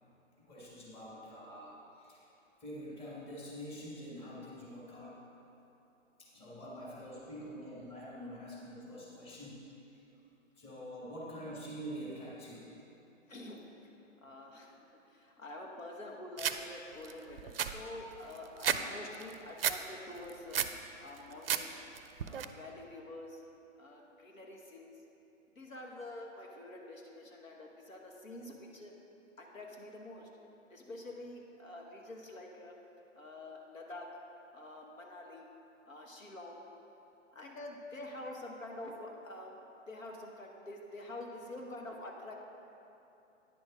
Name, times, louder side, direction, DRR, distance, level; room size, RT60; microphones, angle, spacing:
voice 1, 0.4-2.2 2.6-5.2 6.2-10.0 10.6-12.7, equal, 15° left, -6 dB, 1.6 m, -46 dB
voice 2, 13.3-13.7 14.2-20.6 21.0-21.8 22.2-23.4 23.8-25.0 25.5-28.9 29.4-30.3 30.7-32.7 33.1-34.1 34.5-35.5 35.9-36.6 37.3-39.6 39.9-42.4, left 1 dB, 80° left, 0 dB, 1.4 m, -47 dB
sound 1, 16.4-16.6 17.0-17.1 17.4-18.8 19.1-19.8 20.2-20.8 21.2-21.6 21.9-22.4, right 9 dB, 50° right, 0.5 m, -32 dB
9.6 x 6.4 x 4.9 m, 2.9 s
figure-of-eight pair, 130°, 39 cm